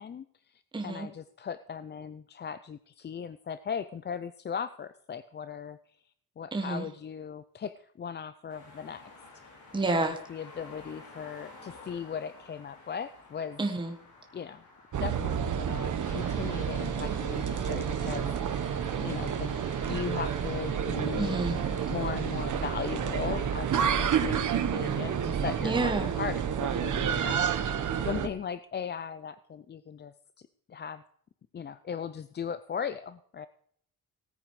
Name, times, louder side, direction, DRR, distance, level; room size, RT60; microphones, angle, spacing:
voice 1, 0.0-6.0 6.4-9.1 9.9-13.6 14.3-14.6 15.0-18.7 19.0-19.5 19.9-21.4 21.9-31.0 31.5-33.5, left 7 dB, 30° left, 13 dB, 0.4 m, -38 dB
voice 2, 0.7-1.1 6.5-6.9 9.7-10.2 13.6-13.9 21.2-21.6 25.6-26.1, right 2 dB, 15° right, 4 dB, 1.2 m, -29 dB
sound 1, 8.5-23.2, left 3 dB, 85° left, 5.2 m, -53 dB
sound 2, 14.9-28.3, right 8 dB, 55° right, 1.2 m, -30 dB
sound 3, 16.0-25.3, left 5 dB, 55° left, 2.8 m, -51 dB
17.5 x 9.1 x 4.7 m, 0.64 s
wide cardioid pair, 175°, 36 cm